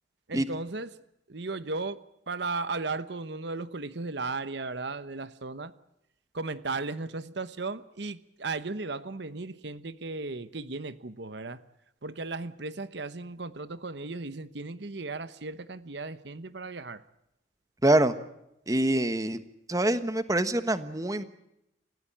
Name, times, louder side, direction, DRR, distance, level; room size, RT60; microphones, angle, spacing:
voice 1, 0.3-1.0 1.3-2.0 2.3-5.7 6.3-11.6 12.0-17.0, right 3 dB, 60° right, 14 dB, 1.0 m, -36 dB
voice 2, 17.8-18.1 18.7-19.4 19.7-21.2, right 1 dB, 15° right, 11 dB, 1.2 m, -25 dB
30.0 x 16.0 x 8.7 m, 0.84 s
head